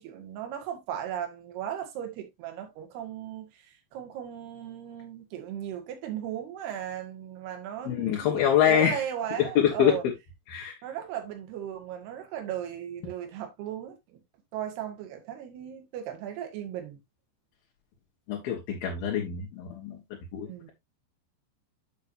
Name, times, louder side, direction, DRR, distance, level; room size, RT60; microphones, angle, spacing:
voice 1, 0.0-10.0 10.8-14.2 14.5-17.0 20.5-20.7, right 10 dB, 65° right, 3.6 m, -37 dB
voice 2, 7.8-9.0 9.4-10.1 10.5-10.7 18.3-20.0 20.3-20.7, left 9 dB, 65° left, 2.8 m, -25 dB
8.7 x 6.9 x 2.6 m
omnidirectional pair, 5.4 m